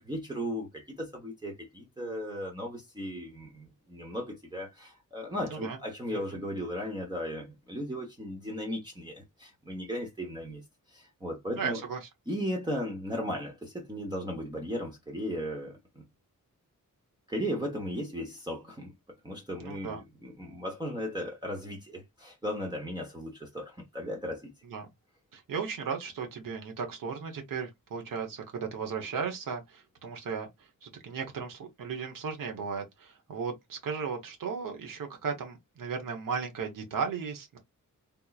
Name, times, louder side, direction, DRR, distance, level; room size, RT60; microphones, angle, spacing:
voice 1, 0.0-10.6 10.9-11.8 12.3-16.0 17.3-18.9 19.2-24.5, equal, 15° right, 0.9 m, -36 dB
voice 2, 11.5-12.1 19.6-20.0 24.6-24.9 25.3-37.6, right 6 dB, 85° right, 1.0 m, -36 dB
3.5 x 3.0 x 2.3 m
wide cardioid pair, 135°, 33 cm